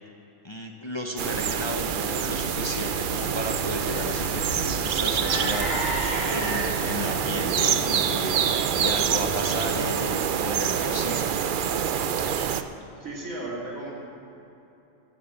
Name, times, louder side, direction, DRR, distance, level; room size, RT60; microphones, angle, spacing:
voice 1, 0.4-5.7 6.3-11.4, left 1 dB, 25° left, 1 dB, 0.7 m, -34 dB
sound 1, 1.2-12.6, right 8 dB, 60° right, 0.5 m, -26 dB
sound 2, 2.2-9.9, equal, 20° right, 3.4 m, -34 dB
voice 2, 13.0-13.9, right 2 dB, 90° right, -4 dB, 3.1 m, -34 dB
15.0 x 6.7 x 7.4 m, 2.9 s
omnidirectional pair, 1.4 m